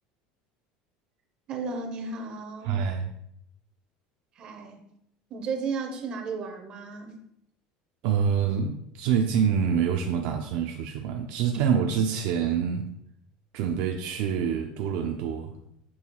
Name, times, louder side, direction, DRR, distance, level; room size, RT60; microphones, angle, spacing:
voice 1, 1.5-2.8 4.4-4.8 5.3-7.2, right 4 dB, 30° right, 3 dB, 0.9 m, -34 dB
voice 2, 2.6-3.1 8.0-12.9 13.5-15.5, right 7 dB, 55° right, 4 dB, 0.5 m, -26 dB
7.0 x 6.4 x 2.3 m, 0.74 s
cardioid pair, 180°, 3 cm